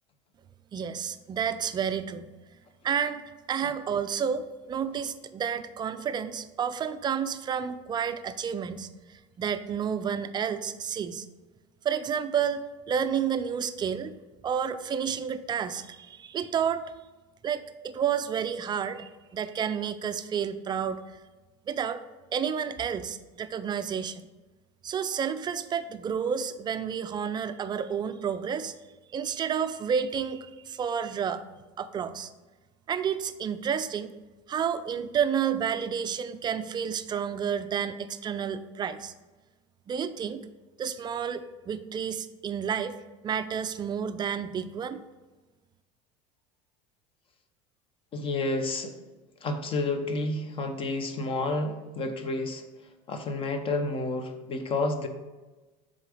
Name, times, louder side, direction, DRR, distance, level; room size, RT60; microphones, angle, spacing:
voice 1, 0.7-2.3 2.8-11.3 11.8-14.1 14.4-16.8 17.4-21.0 21.7-22.0 22.3-24.2 24.8-28.7 29.1-31.4 31.8-32.3 32.9-34.1 34.5-39.1 39.9-40.5 40.8-43.0 43.2-45.0, right 7 dB, 25° right, 11 dB, 0.4 m, -30 dB
voice 2, 48.1-48.9 49.4-52.6 53.1-55.1, left 2 dB, 35° left, 6 dB, 0.9 m, -30 dB
7.4 x 3.8 x 4.9 m, 1.2 s
supercardioid pair, 115°, 16 cm